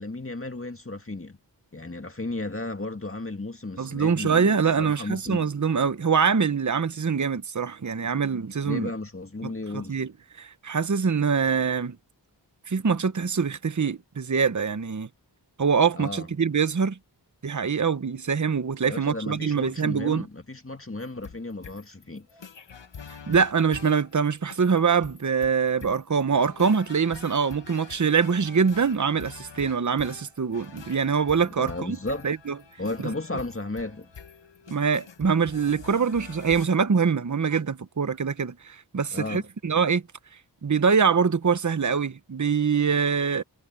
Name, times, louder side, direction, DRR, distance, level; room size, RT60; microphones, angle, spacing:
voice 1, 0.0-1.4 1.7-5.5 8.6-10.0 15.9-16.3 18.9-22.3 31.6-32.3 32.8-34.1 39.1-39.4, left 2 dB, 30° left, 2.1 m, -34 dB
voice 2, 3.8-8.9 9.4-12.0 12.7-15.1 15.6-17.0 17.4-20.2 23.3-32.0 32.2-32.5 34.7-40.0 40.6-43.4, right 6 dB, 45° right, 0.9 m, -24 dB
sound 1, 21.0-36.7, left 6 dB, 85° left, 1.3 m, -46 dB
wide cardioid pair, 70°, 42 cm